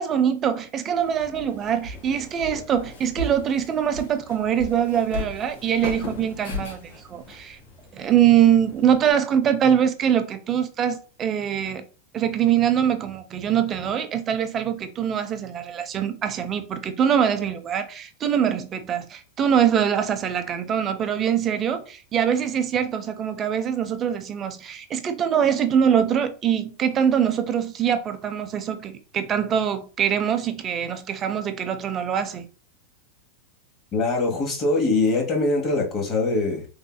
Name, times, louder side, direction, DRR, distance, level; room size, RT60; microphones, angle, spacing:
voice 1, 0.0-7.6 7.9-11.8 12.1-32.5, right 9 dB, 30° right, 0.5 m, -23 dB
Walk footsteps, 1.0-9.1, left 2 dB, 70° left, 1.6 m, -37 dB
voice 2, 33.9-36.7, left 3 dB, 35° left, 1.1 m, -22 dB
3.5 x 2.6 x 2.2 m
hypercardioid pair, 115°, 0 cm